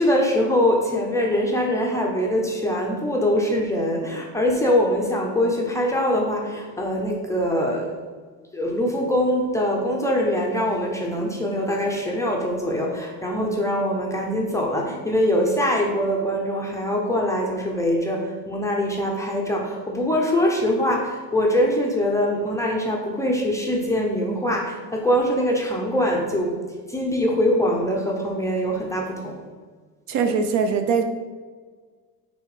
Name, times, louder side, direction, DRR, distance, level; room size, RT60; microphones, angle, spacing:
voice 1, 0.0-7.9 8.5-26.6 26.9-29.4, equal, 5° left, -1 dB, 0.6 m, -23 dB
voice 2, 30.1-31.0, right 5 dB, 45° right, 7 dB, 0.6 m, -21 dB
7.1 x 3.4 x 4.8 m, 1.5 s
cardioid pair, 160°, 42 cm